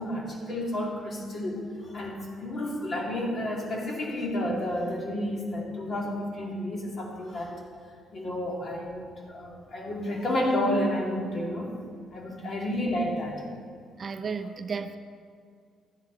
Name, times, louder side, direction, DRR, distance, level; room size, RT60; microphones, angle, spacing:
voice 1, 0.0-7.6 8.1-11.8 12.1-13.4, left 1 dB, 50° left, -1 dB, 2.6 m, -31 dB
voice 2, 14.0-15.0, right 5 dB, 40° right, 9 dB, 0.6 m, -33 dB
13.0 x 9.6 x 4.0 m, 2.2 s
cardioid pair, 90°, 0 cm